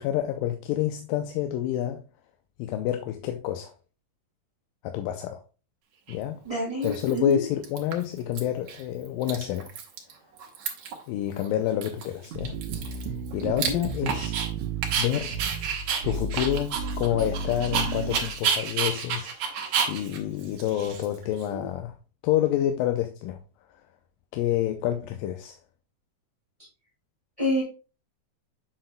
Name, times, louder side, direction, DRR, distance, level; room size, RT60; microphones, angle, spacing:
voice 1, 0.0-2.0 2.6-3.7 4.8-5.4 6.1-6.4 6.8-9.7 11.1-12.6 12.8-14.4 15.0-15.4 16.0-21.9 22.2-23.4 24.3-25.6, left 11 dB, 90° left, 2.3 m, -28 dB
Dog, 6.1-6.2 6.8-7.3 7.6-8.4 8.7-8.8 9.1-10.1 10.4-11.0 11.4-11.5 11.8-14.5 14.8-21.4, right 7 dB, 65° right, 2.2 m, -30 dB
voice 2, 6.4-7.4 13.4-13.8 21.5-21.6 27.4-27.6, left 1 dB, 10° right, 1.9 m, -28 dB
sound 1, 12.4-18.3, right 4 dB, 85° right, 2.3 m, -33 dB
7.7 x 6.5 x 2.2 m
omnidirectional pair, 4.0 m